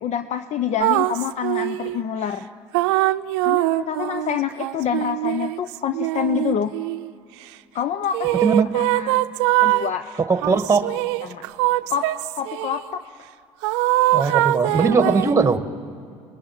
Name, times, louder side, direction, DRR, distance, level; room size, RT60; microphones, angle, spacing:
voice 1, 0.0-2.4 3.4-6.7 7.7-8.4 8.7-9.1 9.6-10.1 11.2-11.4 11.9-12.1 12.4-13.0, left 9 dB, 55° left, 10 dB, 0.8 m, -26 dB
sound 1, 0.8-2.0 2.7-7.1 8.1-9.9 10.4-12.8 13.6-15.4, right 17 dB, 90° right, 0.5 m, -22 dB
voice 2, 10.2-10.9 14.1-15.7, right 4 dB, 20° right, 9 dB, 1.7 m, -19 dB
25.0 x 20.5 x 9.1 m, 2.4 s
supercardioid pair, 75°, 14 cm